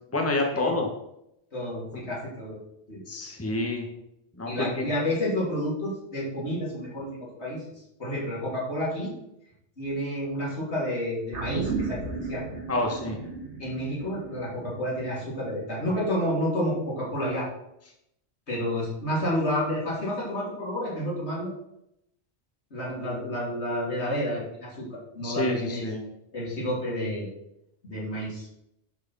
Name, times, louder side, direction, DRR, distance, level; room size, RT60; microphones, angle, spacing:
voice 1, 0.1-0.9 3.1-3.8 4.4-4.9 12.7-13.2 25.2-26.0, left 2 dB, 15° left, 1 dB, 1.3 m, -28 dB
voice 2, 1.5-2.6 2.9-3.0 4.5-7.6 8.0-9.1 9.8-12.5 13.6-17.5 18.5-21.5 22.7-25.9 26.3-27.3 27.8-28.5, equal, 80° left, -5 dB, 3.5 m, -30 dB
sound 1, 11.3-15.9 16.3-16.4, right 3 dB, 90° right, 1.6 m, -35 dB
11.0 x 4.8 x 5.5 m, 0.81 s
omnidirectional pair, 1.1 m